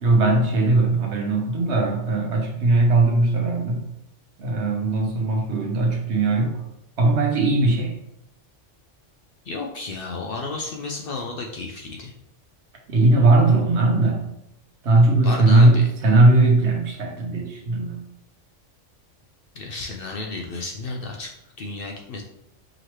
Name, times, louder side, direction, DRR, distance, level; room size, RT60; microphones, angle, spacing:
voice 1, 0.0-3.8 4.4-6.6 7.0-8.0 12.9-14.3 14.8-18.0, right 2 dB, 65° right, 1 dB, 1.1 m, -19 dB
voice 2, 9.4-12.1 15.2-15.9 19.5-22.2, left 3 dB, 60° left, 2 dB, 0.6 m, -32 dB
4.9 x 3.0 x 3.0 m, 0.82 s
omnidirectional pair, 1.3 m